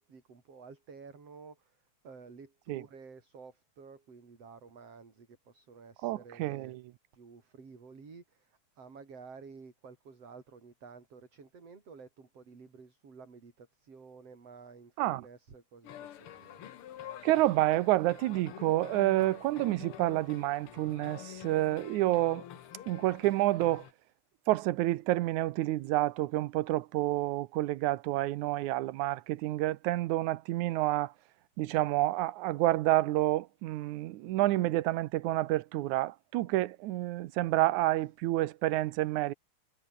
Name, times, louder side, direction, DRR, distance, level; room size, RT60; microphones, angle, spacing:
voice 1, 0.0-1.8 2.0-6.8 7.1-16.7 34.2-34.8, right 5 dB, 55° right, 5.4 m, -52 dB
voice 2, 6.0-6.8 15.0-15.2 17.2-22.4 22.9-23.9 24.5-31.1 31.6-39.3, right 16 dB, 90° right, 2.2 m, -29 dB
sound 1, 15.8-23.9, left 11 dB, 60° left, 1.8 m, -48 dB
omnidirectional pair, 3.4 m